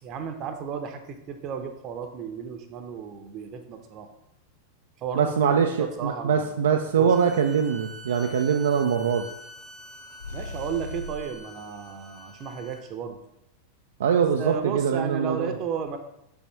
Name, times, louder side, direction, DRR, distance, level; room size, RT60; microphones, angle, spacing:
voice 1, 0.0-4.1 5.0-7.1 10.3-13.2 14.4-16.0, right 7 dB, 35° right, 7 dB, 0.7 m, -34 dB
voice 2, 5.1-9.3 14.0-15.5, right 7 dB, 65° right, 4 dB, 0.4 m, -23 dB
sound 1, 7.1-12.8, equal, 15° left, 0.8 m, -46 dB
sound 2, 10.2-11.4, left 3 dB, 65° left, 0.4 m, -38 dB
6.0 x 5.6 x 3.0 m, 0.79 s
figure-of-eight pair, 90°, 0 cm